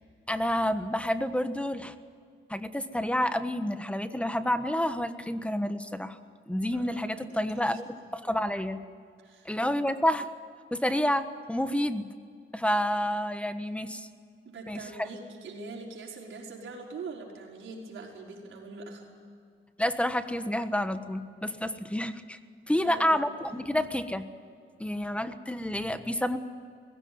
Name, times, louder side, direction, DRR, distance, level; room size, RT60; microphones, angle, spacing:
voice 1, 0.3-1.9 2.5-6.2 6.5-8.8 9.4-10.3 10.7-12.1 12.5-14.1 14.7-14.8 19.8-22.4 22.7-24.3 24.8-26.4, left 1 dB, 5° left, 10 dB, 1.3 m, -29 dB
voice 2, 6.7-8.1 9.2-9.9 14.4-19.3 22.7-23.8, right 3 dB, 70° right, -1 dB, 5.4 m, -44 dB
20.0 x 16.5 x 9.6 m, 2.2 s
cardioid pair, 100°, 21 cm